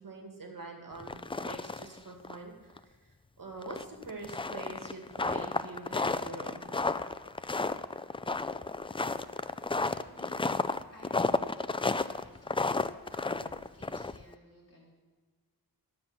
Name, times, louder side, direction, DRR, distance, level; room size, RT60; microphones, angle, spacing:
voice 1, 0.0-7.0, right 3 dB, 60° right, 1 dB, 2.2 m, -45 dB
sound 1, 1.0-2.0 2.2-2.4 2.8-2.9 3.6-14.3, left 3 dB, 15° left, 0.3 m, -32 dB
voice 2, 9.8-12.7 13.1-14.9, left 1 dB, 40° left, -5 dB, 4.1 m, -55 dB
12.0 x 7.5 x 5.9 m, 1.4 s
wide cardioid pair, 100°, 37 cm